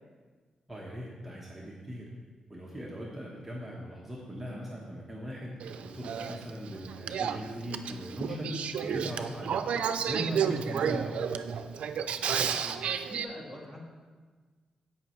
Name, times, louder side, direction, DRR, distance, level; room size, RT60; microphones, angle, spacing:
voice 1, 0.7-2.1 2.5-8.6 8.8-9.5 9.9-11.1, equal, 10° right, -5 dB, 1.0 m, -39 dB
Male speech man speaking / Female speech woman speaking / Conversation, 5.6-13.2, right 7 dB, 80° right, 0.4 m, -32 dB
voice 2, 12.3-13.8, equal, 15° left, -2 dB, 1.6 m, -44 dB
15.0 x 5.3 x 3.1 m, 1.4 s
wide cardioid pair, 145°, 2 cm